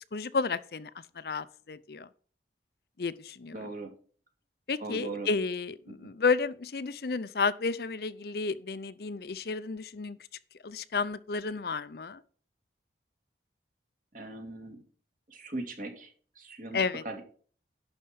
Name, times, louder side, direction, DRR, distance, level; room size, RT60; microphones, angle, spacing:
voice 1, 0.0-2.1 3.0-3.7 4.7-10.2 10.6-12.2 16.7-17.0, left 4 dB, 55° left, 0.5 m, -32 dB
voice 2, 3.5-3.9 4.8-5.3 5.9-6.1 14.1-14.8 15.3-17.2, right 2 dB, 45° right, 2.3 m, -40 dB
11.0 x 4.4 x 7.7 m
head